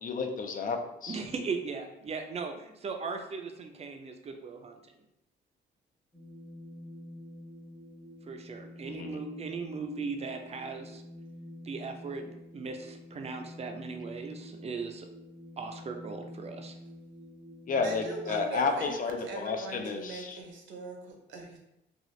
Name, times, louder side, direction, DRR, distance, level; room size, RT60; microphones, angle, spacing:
voice 1, 0.0-1.2 8.8-9.2 17.7-20.4, left 4 dB, 45° left, 4 dB, 0.4 m, -32 dB
voice 2, 1.1-4.8 8.3-11.0 11.6-15.1 15.6-16.8, right 4 dB, 30° right, 5 dB, 0.4 m, -38 dB
sound 1, 6.1-18.5, left 1 dB, 20° left, 0.9 m, -47 dB
voice 3, 17.8-21.6, right 2 dB, 70° right, 1 dB, 0.7 m, -41 dB
2.7 x 2.4 x 3.1 m, 0.85 s
cardioid pair, 90°, 20 cm